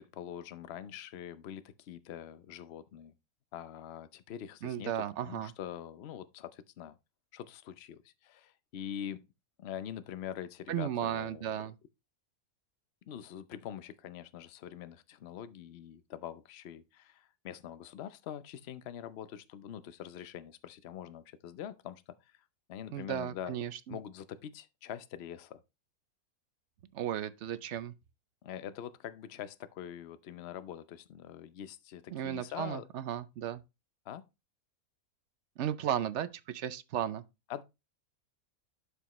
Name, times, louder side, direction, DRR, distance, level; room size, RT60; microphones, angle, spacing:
voice 1, 0.0-3.1 3.5-7.0 7.3-9.2 9.6-11.5 13.1-23.6 23.9-25.6 28.4-32.9 34.0-34.3 37.5-37.6, left 10 dB, 55° left, 0.8 m, -44 dB
voice 2, 4.6-5.5 10.7-11.7 22.9-24.0 26.9-27.9 32.1-33.6 35.6-37.2, right 10 dB, 60° right, 0.8 m, -35 dB
11.5 x 5.1 x 3.0 m
omnidirectional pair, 1.5 m